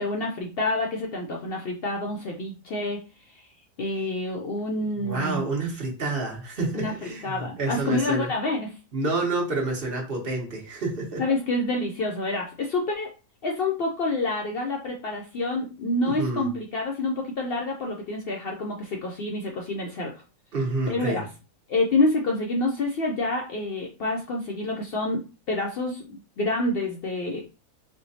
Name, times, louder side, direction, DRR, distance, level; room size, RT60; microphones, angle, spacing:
voice 1, 0.0-3.0 3.3-3.5 3.8-5.4 6.7-6.9 7.2-8.7 11.2-13.1 13.4-20.2 20.9-21.3 21.7-27.4, left 2 dB, 60° left, 1 dB, 0.7 m, -28 dB
voice 2, 5.0-8.3 8.9-11.2 16.2-16.5 20.5-21.2, right 2 dB, 50° right, 0 dB, 1.1 m, -28 dB
4.4 x 2.2 x 2.6 m, 0.33 s
omnidirectional pair, 1.4 m